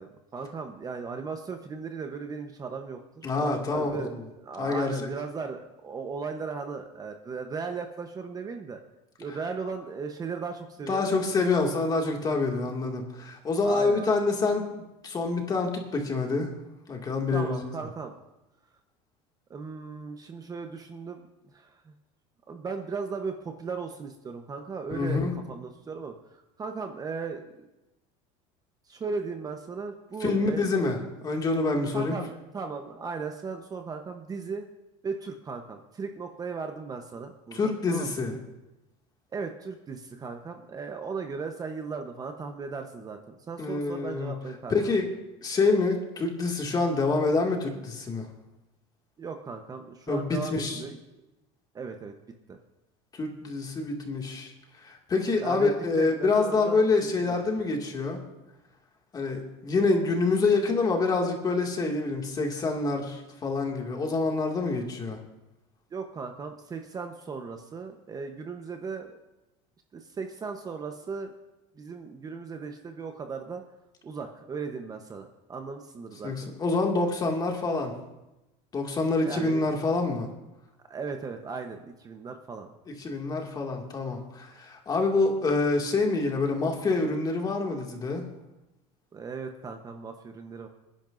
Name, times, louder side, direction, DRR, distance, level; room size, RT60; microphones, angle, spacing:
voice 1, 0.0-8.8 9.2-11.1 13.6-14.0 17.3-18.1 19.5-21.9 22.5-27.7 28.9-30.7 31.9-34.6 35.0-38.2 39.3-44.7 49.2-51.0 51.7-52.1 52.5-52.6 55.4-57.4 65.9-69.1 69.9-71.3 71.7-73.6 74.0-76.5 79.2-79.7 80.9-82.7 89.1-90.7, right 5 dB, 25° right, 5 dB, 1.0 m, -37 dB
voice 2, 3.2-4.1 4.6-5.1 10.9-16.5 16.9-17.6 24.9-25.3 30.2-31.0 31.2-32.2 37.5-38.3 43.6-44.3 44.7-45.1 45.4-48.3 50.1-50.8 53.1-54.5 54.8-58.2 59.1-65.2 76.2-77.9 78.7-80.3 83.0-88.2, left 3 dB, 25° left, 1 dB, 2.2 m, -26 dB
26.5 x 10.5 x 2.6 m, 0.99 s
supercardioid pair, 130°, 15 cm